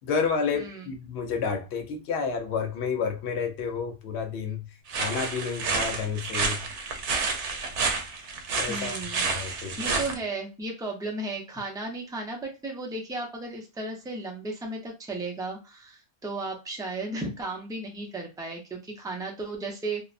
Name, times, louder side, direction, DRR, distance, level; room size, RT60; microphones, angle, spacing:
voice 1, 0.0-4.7 4.9-6.6 8.5-10.0, left 5 dB, 70° left, 0.9 m, -30 dB
voice 2, 0.5-0.8 8.7-9.3 9.6-20.0, right 2 dB, 5° right, 0.3 m, -35 dB
sound 1, 4.9-10.2, right 4 dB, 80° right, 0.9 m, -29 dB
2.7 x 2.1 x 2.4 m
omnidirectional pair, 1.2 m